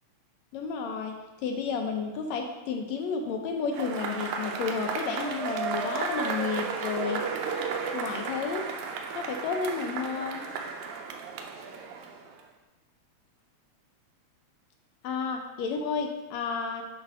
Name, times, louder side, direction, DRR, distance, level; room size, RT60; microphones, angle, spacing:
voice 1, 0.5-7.4 7.9-8.6 9.1-10.5 15.0-16.8, left 5 dB, 75° left, 3 dB, 1.8 m, -31 dB
Cheering / Applause / Crowd, 3.7-12.4, right 5 dB, 80° right, 1.9 m, -33 dB
8.0 x 3.2 x 5.2 m, 1.2 s
omnidirectional pair, 3.3 m